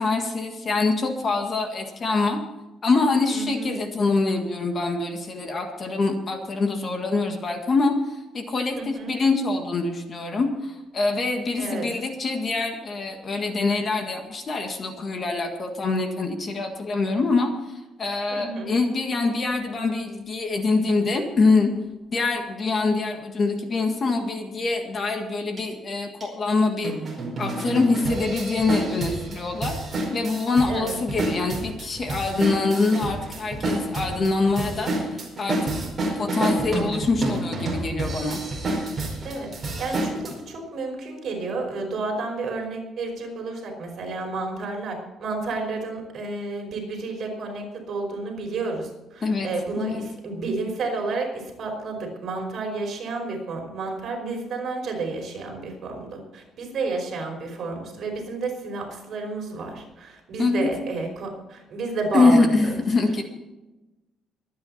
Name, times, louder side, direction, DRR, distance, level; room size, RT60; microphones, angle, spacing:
voice 1, 0.0-2.4 2.8-21.7 22.1-26.9 27.4-29.8 30.1-35.7 36.1-38.4 49.2-49.5 49.8-50.0 60.4-60.7 62.1-63.2, left 3 dB, 30° left, 4 dB, 1.8 m, -24 dB
voice 2, 3.3-3.8 8.8-9.1 11.6-11.9 18.3-18.8 30.7-31.0 39.2-62.8, right 3 dB, 45° right, 1 dB, 5.1 m, -31 dB
sound 1, 25.6-25.7 26.2-26.3 26.8-40.3, right 2 dB, 20° right, 4.9 m, -29 dB
23.5 x 9.5 x 4.3 m, 1.0 s
cardioid pair, 175°, 0 cm